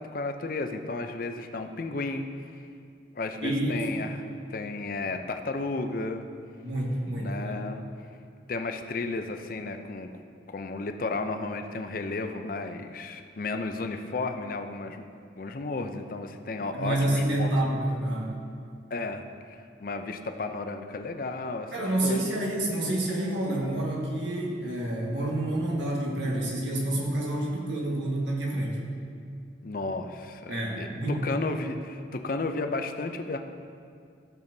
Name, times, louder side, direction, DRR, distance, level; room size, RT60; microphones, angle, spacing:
voice 1, 0.0-2.5 3.1-4.2 4.5-6.2 7.2-7.8 8.5-10.1 10.5-15.1 15.4-17.5 18.9-19.2 19.5-21.7 22.0-22.4 29.6-33.4, left 3 dB, 50° left, 6 dB, 0.5 m, -33 dB
voice 2, 3.4-3.9 6.6-7.6 16.5-18.3 21.7-28.8 30.5-31.2, right 1 dB, 75° right, -3 dB, 1.6 m, -28 dB
13.0 x 7.0 x 2.7 m, 2.3 s
head